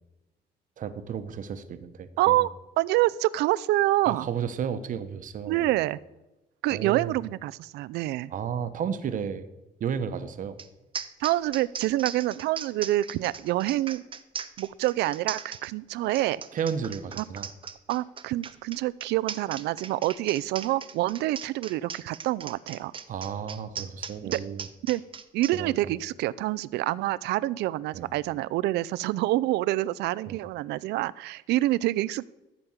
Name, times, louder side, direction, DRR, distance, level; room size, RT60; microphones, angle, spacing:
voice 1, 0.8-2.4 4.0-5.7 6.7-7.1 8.3-9.5 9.8-10.6 16.5-17.5 23.1-24.7 25.5-25.8 27.9-28.1 30.3-30.4, right 7 dB, 50° right, 11 dB, 1.0 m, -33 dB
voice 2, 2.2-4.3 5.5-6.0 6.6-8.3 11.2-14.0 14.6-16.4 17.2-17.3 17.9-22.9 24.2-24.4 24.8-25.0 25.3-32.3, right 16 dB, 80° right, 19 dB, 0.4 m, -27 dB
sound 1, 10.6-10.7 10.9-25.5, right 6 dB, 30° right, 0.7 m, -38 dB
14.0 x 5.2 x 7.2 m, 0.99 s
cardioid pair, 110°, 17 cm